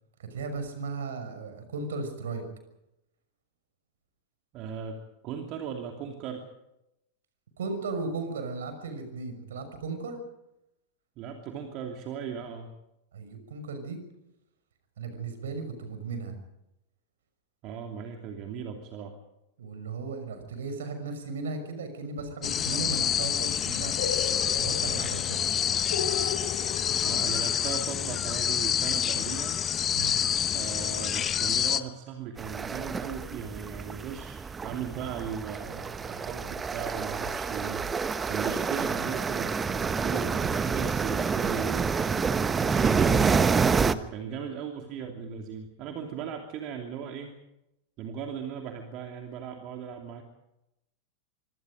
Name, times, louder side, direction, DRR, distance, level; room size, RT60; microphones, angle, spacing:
voice 1, 0.2-2.4 7.6-10.2 13.1-14.0 15.0-16.4 19.6-23.9 24.6-25.4 29.9-30.2, right 4 dB, 65° right, 8 dB, 6.0 m, -36 dB
voice 2, 4.5-5.0 5.2-6.5 11.2-12.7 17.6-19.1 27.0-29.6 30.5-37.9 38.3-41.9 42.6-47.4 48.0-50.2, right 7 dB, 40° right, 3 dB, 2.8 m, -37 dB
sound 1, 22.4-31.8, left 9 dB, 25° left, 1.1 m, -27 dB
sound 2, 24.0-29.7, left 6 dB, 60° left, 5.7 m, -37 dB
sound 3, 32.4-43.9, right 5 dB, 15° right, 1.2 m, -28 dB
25.0 x 25.0 x 5.2 m, 0.87 s
figure-of-eight pair, 90°, 0 cm